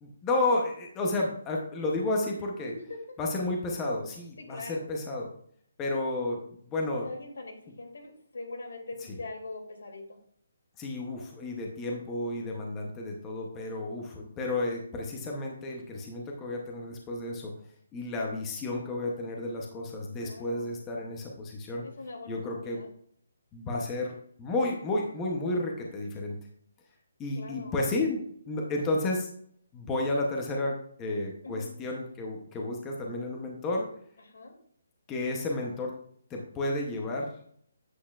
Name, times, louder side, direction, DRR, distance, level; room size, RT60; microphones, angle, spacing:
voice 1, 0.0-2.7 3.2-5.3 5.8-7.1 9.1-9.2 10.8-17.5 17.9-21.8 22.3-22.8 23.5-26.4 27.2-28.2 28.5-29.3 29.7-33.9 35.1-35.9 36.3-37.3, left 2 dB, 10° left, -1 dB, 0.7 m, -32 dB
voice 2, 4.4-4.9 7.0-10.0 20.2-20.7 21.8-22.9 27.3-27.7 31.4-31.7 34.3-34.5, left 2 dB, 85° left, 2 dB, 2.6 m, -42 dB
8.7 x 7.7 x 2.4 m, 0.62 s
hypercardioid pair, 180°, 0 cm